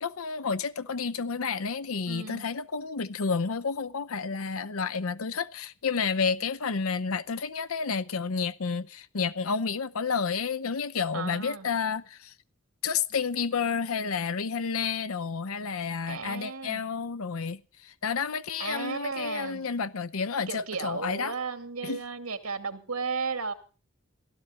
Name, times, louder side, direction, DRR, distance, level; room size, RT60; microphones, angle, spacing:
voice 1, 0.0-12.3 12.8-21.3 21.8-22.0, left 5 dB, 75° left, 0.7 m, -30 dB
voice 2, 2.1-2.4 11.1-11.7 16.1-16.8 18.6-19.6 20.5-23.5, right 4 dB, 90° right, 2.3 m, -34 dB
15.5 x 13.0 x 5.7 m
head